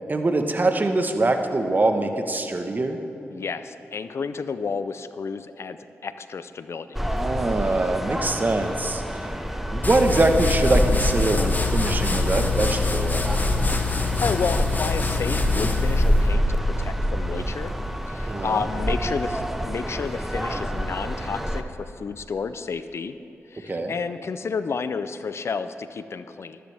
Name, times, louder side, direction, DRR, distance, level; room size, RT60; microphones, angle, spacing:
voice 1, 0.1-3.0 7.1-9.0 9.7-13.4 18.2-18.6 23.7-23.9, right 2 dB, 35° right, 5 dB, 1.2 m, -23 dB
voice 2, 3.3-5.8 6.0-7.0 14.2-17.7 18.1-23.1 23.5-26.6, left 5 dB, 60° left, 12 dB, 0.5 m, -31 dB
sound 1, 6.9-21.6, equal, 5° right, 1.0 m, -27 dB
sound 2, 9.8-16.3, left 4 dB, 35° left, 1.1 m, -25 dB
13.5 x 13.5 x 3.4 m, 2.9 s
cardioid pair, 45°, 5 cm